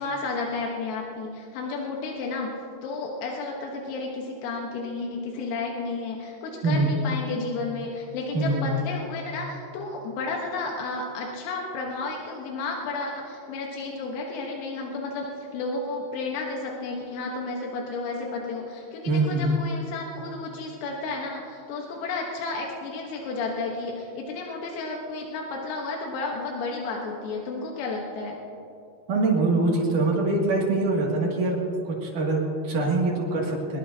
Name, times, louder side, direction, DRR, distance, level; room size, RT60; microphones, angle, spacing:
voice 1, 0.0-2.5 2.8-28.4, left 3 dB, 90° left, -1 dB, 4.0 m, -32 dB
voice 2, 8.3-8.7 19.0-19.6 29.1-33.8, right 2 dB, 45° right, -3 dB, 3.2 m, -24 dB
23.0 x 21.0 x 2.8 m, 2.7 s
omnidirectional pair, 5.8 m